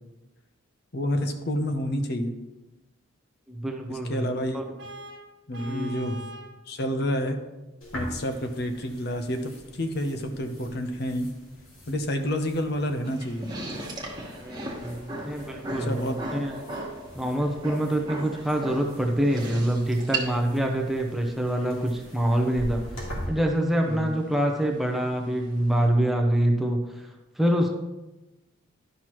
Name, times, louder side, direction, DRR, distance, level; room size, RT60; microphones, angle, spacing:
voice 1, 0.9-2.3 3.9-4.6 5.5-6.2 6.7-7.4 7.9-11.3 11.9-13.5 15.6-16.2 23.9-24.1, equal, 50° left, 6 dB, 0.7 m, -29 dB
voice 2, 3.5-4.3 4.5-4.6 5.6-6.0 14.4-16.5 17.2-22.8 23.3-27.1 27.4-27.7, right 1 dB, ahead, 0 dB, 0.7 m, -25 dB
Vehicle horn car horn honking, 4.8-6.6, right 1 dB, 60° right, 1.2 m, -42 dB
sound 1, 7.8-23.3, equal, 75° left, 2.4 m, -44 dB
sound 2, 13.0-25.9, right 2 dB, 20° right, 1.2 m, -37 dB
11.5 x 6.0 x 3.0 m, 1.0 s
head